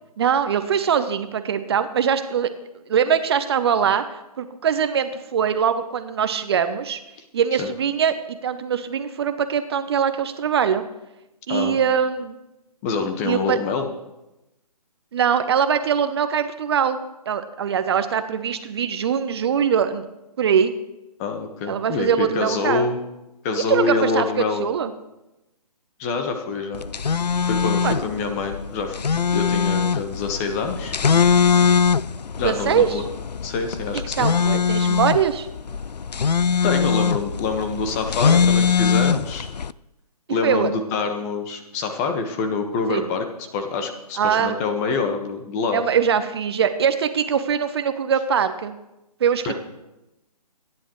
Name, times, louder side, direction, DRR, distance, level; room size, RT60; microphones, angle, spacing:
voice 1, 0.2-2.5 2.9-7.0 7.3-10.8 11.5-12.4 13.2-13.6 15.1-17.0 17.3-20.0 20.4-20.7 21.7-22.9 23.7-24.9 27.8-28.0 32.4-33.0 34.2-35.5 40.4-40.7 42.9-43.1 44.2-44.6 45.7-48.7 49.2-49.5, right 7 dB, 40° right, 10 dB, 0.9 m, -22 dB
voice 2, 12.8-13.9 21.2-23.0 23.4-24.6 26.0-26.8 27.4-30.9 32.4-33.0 33.4-34.3 36.6-39.5 40.3-43.2 43.5-45.8 49.4-49.5, left 4 dB, 25° left, 6 dB, 1.4 m, -26 dB
sound 1, 26.7-39.7, left 6 dB, 80° left, 0.5 m, -21 dB
26.5 x 10.5 x 3.1 m, 0.95 s
figure-of-eight pair, 140°, 21 cm